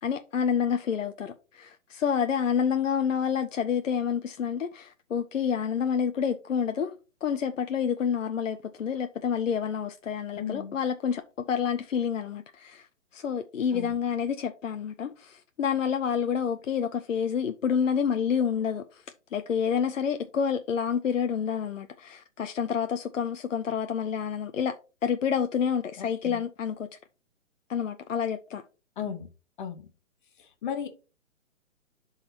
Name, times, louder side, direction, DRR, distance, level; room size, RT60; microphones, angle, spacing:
voice 1, 0.0-11.2 11.5-12.9 13.1-19.0 19.3-24.8 25.0-26.9 27.7-28.6, left 7 dB, 65° left, 0.7 m, -28 dB
voice 2, 10.4-10.8 13.7-13.9 26.0-26.4 29.0-29.3 29.6-29.8 30.4-30.9, left 8 dB, 40° left, 1.0 m, -35 dB
11.5 x 4.0 x 2.8 m
figure-of-eight pair, 130°, 40 cm